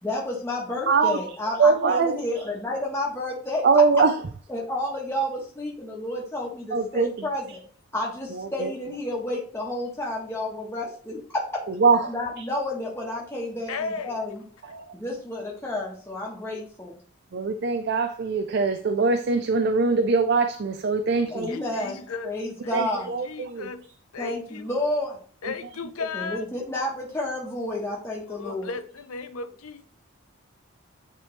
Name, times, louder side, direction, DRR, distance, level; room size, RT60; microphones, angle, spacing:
voice 1, 0.0-3.6 4.5-7.6 7.9-11.6 12.1-14.4 14.9-17.0 21.3-22.0 22.2-23.1 24.2-25.2 26.1-28.7, left 1 dB, 10° left, 1.2 m, -30 dB
voice 2, 0.9-1.2 1.6-2.2 3.6-4.1 6.7-7.6 8.3-8.7 11.8-12.1 14.7-14.9 17.3-21.5 22.7-23.7 25.4-25.5 28.5-28.6, right 4 dB, 50° right, 0.4 m, -22 dB
voice 3, 13.7-14.2 21.2-22.3 22.6-22.8 23.2-23.8 24.1-24.7 25.4-26.4 28.3-29.8, left 4 dB, 90° left, 0.6 m, -35 dB
8.8 x 3.3 x 3.2 m
head